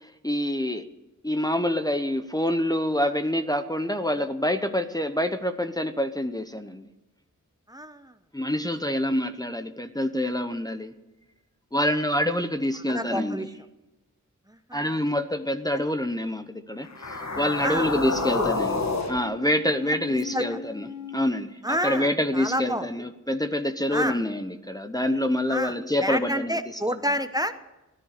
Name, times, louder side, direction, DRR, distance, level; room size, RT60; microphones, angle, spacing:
voice 1, 0.2-0.9 1.2-6.8 8.3-10.9 11.7-13.5 14.7-18.8 19.1-20.9 21.1-26.6 26.9-27.0, left 1 dB, 10° left, 7 dB, 0.9 m, -26 dB
voice 2, 7.7-8.2 12.9-13.5 14.5-15.0 17.6-17.9 18.4-18.6 19.9-20.6 21.6-22.9 23.9-24.2 25.5-27.5, equal, 10° right, 10 dB, 0.9 m, -29 dB
sound 1, 16.8-21.2, left 3 dB, 60° left, 1.6 m, -30 dB
16.0 x 13.0 x 6.7 m, 1.0 s
wide cardioid pair, 70°, 31 cm